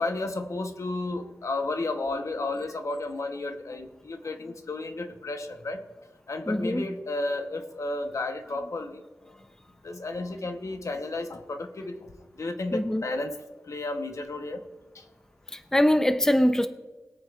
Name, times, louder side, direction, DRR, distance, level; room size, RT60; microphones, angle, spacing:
voice 1, 0.0-5.8 6.3-9.0 9.8-12.1 12.4-13.4 13.7-14.6 14.9-15.0, left 2 dB, 60° left, 1.0 m, -32 dB
voice 2, 6.5-6.9 12.7-13.0 15.5-16.7, left 1 dB, 10° left, 0.7 m, -23 dB
21.0 x 8.9 x 2.5 m
cardioid pair, 50°, 6 cm